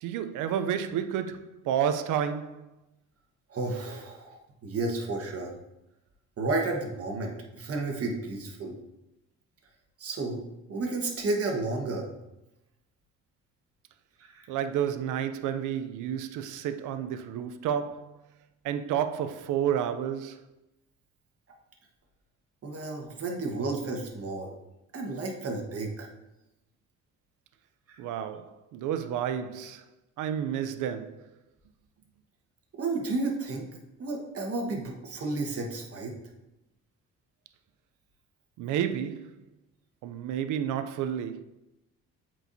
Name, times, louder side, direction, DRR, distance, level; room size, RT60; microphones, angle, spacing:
voice 1, 0.0-2.7 14.5-18.3 18.6-20.5 28.0-29.8 30.2-31.3 38.6-39.4 40.0-41.4, right 9 dB, 80° right, 0.5 m, -31 dB
voice 2, 3.5-5.5 6.4-8.8 10.0-10.4 10.7-12.1 14.2-14.5 22.6-24.5 24.9-26.1 27.9-28.0 32.8-33.7 34.0-36.2, right 3 dB, 50° right, 1.4 m, -32 dB
7.9 x 4.6 x 2.7 m
cardioid pair, 90°, 30 cm